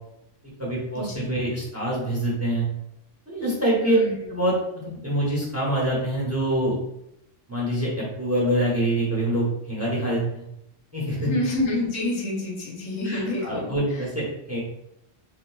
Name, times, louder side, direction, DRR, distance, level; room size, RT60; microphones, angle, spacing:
voice 1, 0.6-2.7 3.3-4.0 4.3-4.5 4.9-6.7 7.5-10.4 10.9-11.3 13.0-14.6, right 1 dB, 15° right, -5 dB, 0.8 m, -25 dB
voice 2, 3.8-4.1 11.3-13.7, left 2 dB, 85° left, -1 dB, 1.2 m, -27 dB
3.8 x 2.9 x 2.2 m, 0.81 s
omnidirectional pair, 1.3 m